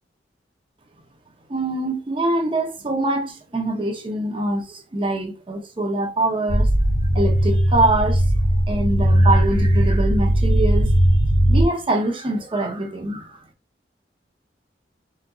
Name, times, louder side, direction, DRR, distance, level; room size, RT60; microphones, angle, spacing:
voice 1, 1.5-6.7 7.1-8.3 8.7-10.9 11.5-13.3, right 2 dB, 30° right, 0.6 m, -24 dB
sound 1, 6.5-11.7, equal, 75° left, 0.7 m, -18 dB
4.1 x 2.5 x 2.3 m
head